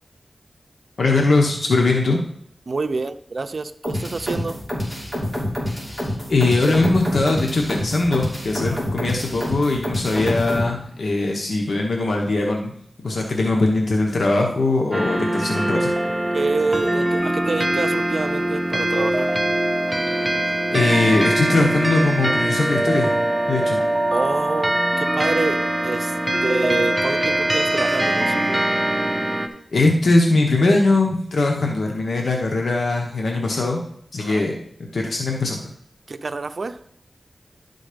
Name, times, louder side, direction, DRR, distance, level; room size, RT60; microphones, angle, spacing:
voice 1, 1.0-2.2 6.3-12.7 13.0-15.9 20.2-20.3 20.7-23.2 23.5-23.9 29.3-29.4 29.7-33.8 34.1-34.6 34.9-35.7, left 2 dB, 80° left, 1 dB, 1.0 m, -20 dB
voice 2, 2.7-4.6 8.6-8.9 16.3-19.3 24.1-28.4 34.2-34.4 36.1-36.8, right 3 dB, 60° right, 10 dB, 0.5 m, -27 dB
sound 1, 3.8-10.7, left 1 dB, 10° left, 3.1 m, -27 dB
sound 2, 14.9-29.5, right 1 dB, 15° right, 0.7 m, -22 dB
11.0 x 4.1 x 5.1 m, 0.66 s
wide cardioid pair, 85°, 0 cm